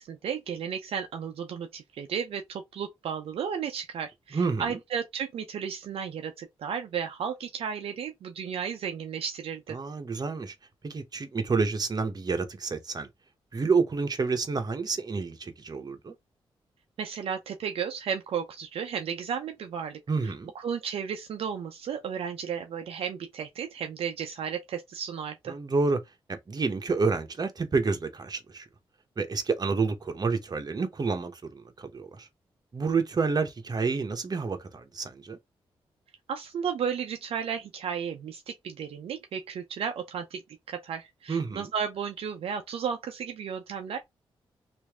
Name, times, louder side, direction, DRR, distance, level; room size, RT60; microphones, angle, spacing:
voice 1, 0.0-9.8 17.0-20.0 20.5-25.6 36.3-40.4 40.7-44.0, right 7 dB, 75° right, 0.5 m, -34 dB
voice 2, 4.3-4.8 9.7-10.5 10.8-13.1 13.5-16.1 20.1-20.5 25.5-26.0 26.3-28.7 29.2-32.3 32.7-35.4 41.3-41.7, right 4 dB, 40° right, 1.0 m, -29 dB
3.1 x 2.6 x 3.5 m
cardioid pair, 55°, 10 cm